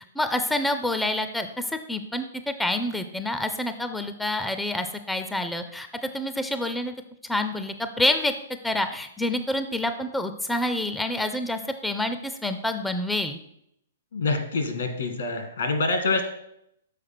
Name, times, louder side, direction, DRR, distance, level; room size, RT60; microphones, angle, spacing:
voice 1, 0.2-6.9 7.3-8.3 8.6-13.4, left 1 dB, 5° left, 8 dB, 0.4 m, -27 dB
voice 2, 14.1-16.2, left 3 dB, 80° left, 6 dB, 1.7 m, -26 dB
6.5 x 4.8 x 5.8 m, 0.75 s
hypercardioid pair, 150°, 0 cm